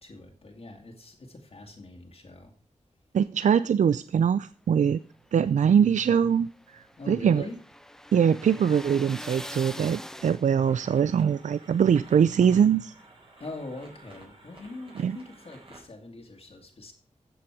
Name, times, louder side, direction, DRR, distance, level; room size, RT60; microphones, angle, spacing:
voice 1, 0.0-2.5 7.0-7.6 13.4-16.9, left 2 dB, 50° left, 2.2 m, -42 dB
voice 2, 3.1-5.0 5.3-7.4 8.1-12.9 15.0-15.2, right 7 dB, 75° right, 0.4 m, -23 dB
sound 1, 5.3-10.8, equal, 5° left, 0.8 m, -43 dB
sound 2, 10.6-15.8, right 2 dB, 45° right, 5.3 m, -51 dB
13.5 x 7.7 x 4.8 m
wide cardioid pair, 75°, 13 cm